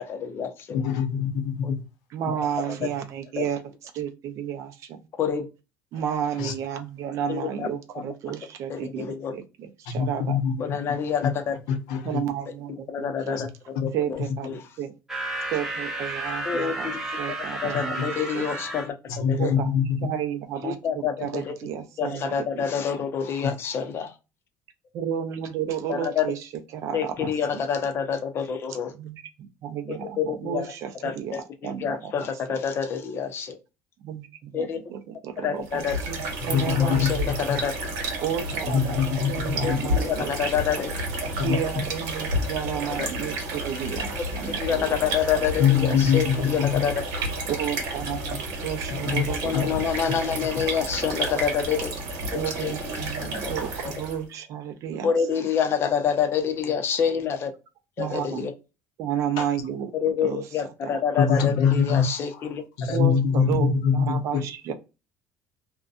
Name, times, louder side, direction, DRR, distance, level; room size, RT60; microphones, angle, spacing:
voice 1, 0.0-0.8 1.6-1.7 2.8-2.9 3.4-3.5 5.2-5.5 7.3-7.7 7.9-8.0 8.7-9.3 10.6-11.6 12.9-13.5 13.8-14.2 14.5-14.6 16.5-17.0 17.6-18.9 19.3-19.5 20.6-21.5 22.0-24.1 25.9-26.3 26.9-28.9 29.9-30.6 31.0-31.4 31.8-33.6 34.5-34.8 35.4-36.0 36.8-37.7 39.6-40.9 43.0-43.1 44.6-47.0 49.4-51.9 52.3-52.7 53.4-53.5 53.8-53.9 55.0-57.5 58.0-58.5 59.9-63.0, left 7 dB, 40° left, 0.5 m, -27 dB
voice 2, 0.7-1.8 6.4-6.5 9.9-10.5 11.7-12.2 13.4-13.5 13.8-13.9 19.1-20.1 23.4-23.5 36.5-37.1 37.5-37.6 38.7-39.8 41.4-41.6 45.6-46.8 49.0-49.2 49.5-49.6 59.4-59.5 61.2-62.1 62.8-64.4, left 7 dB, 90° left, 0.7 m, -23 dB
voice 3, 2.1-3.6 3.9-5.0 5.9-10.4 12.0-13.4 13.9-14.9 15.5-18.5 19.4-22.7 22.9-23.0 24.9-27.6 28.9-32.1 34.0-37.3 38.2-39.0 39.2-40.4 41.3-45.0 47.5-50.2 52.3-55.5 58.0-58.5 59.0-59.9 60.2-60.5 60.8-61.2 62.9-64.7, right 9 dB, 55° right, 0.5 m, -32 dB
sound 1, 15.1-18.9, right 2 dB, 5° right, 0.6 m, -32 dB
sound 2, 35.6-54.2, right 1 dB, 80° right, 1.0 m, -31 dB
2.6 x 2.2 x 2.3 m
cardioid pair, 145°, 6 cm